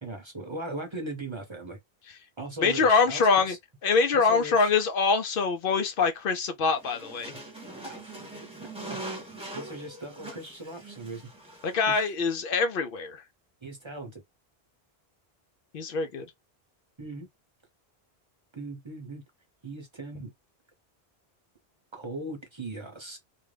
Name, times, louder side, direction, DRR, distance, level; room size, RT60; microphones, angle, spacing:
voice 1, 0.0-1.8 2.4-3.6 4.1-4.7 7.8-8.0 8.6-9.1 9.5-11.2 11.9-12.1 13.6-14.2 17.0-17.3 18.5-19.2 19.6-20.3 21.9-23.2, right 2 dB, 30° right, 0.7 m, -39 dB
voice 2, 2.6-3.6 3.8-7.3 11.6-13.2 15.7-16.3, left 5 dB, 65° left, 0.7 m, -24 dB
sound 1, 6.7-11.9, right 2 dB, 5° right, 0.9 m, -42 dB
2.5 x 2.2 x 3.2 m
omnidirectional pair, 1.0 m